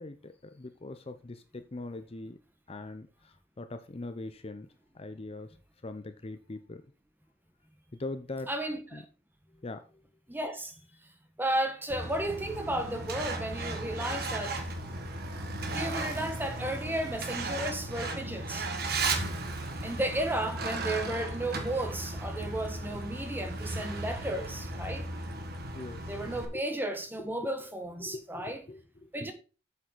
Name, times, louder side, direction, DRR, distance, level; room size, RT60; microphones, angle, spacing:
voice 1, 0.0-2.4 2.7-4.7 4.9-5.5 5.8-6.8 8.0-8.5 8.9-9.0 9.6-9.8 25.7-26.1 26.5-26.6 27.2-27.3 28.0-29.3, left 2 dB, 30° left, 0.7 m, -41 dB
voice 2, 8.5-9.0 10.3-10.7 11.4-14.6 15.7-18.7 19.8-25.1 26.1-28.6 29.1-29.3, right 1 dB, 10° right, 1.3 m, -33 dB
Truck, 11.9-26.4, right 2 dB, 60° right, 1.7 m, -35 dB
8.3 x 7.6 x 4.0 m
head